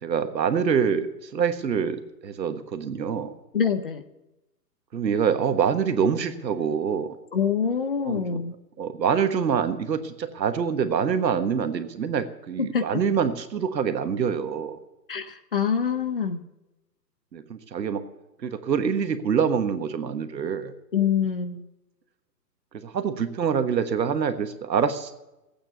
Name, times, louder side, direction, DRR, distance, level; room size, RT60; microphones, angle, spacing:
voice 1, 0.0-3.3 4.9-7.1 8.0-8.4 8.8-14.8 17.3-18.0 18.4-20.7 22.7-25.1, right 7 dB, 80° right, 9 dB, 1.5 m, -25 dB
voice 2, 3.5-4.0 7.3-8.5 12.6-13.0 15.1-16.4 20.9-21.7, left 7 dB, 35° left, 11 dB, 0.6 m, -25 dB
13.5 x 8.8 x 8.1 m, 0.97 s
hypercardioid pair, 160°, 50 cm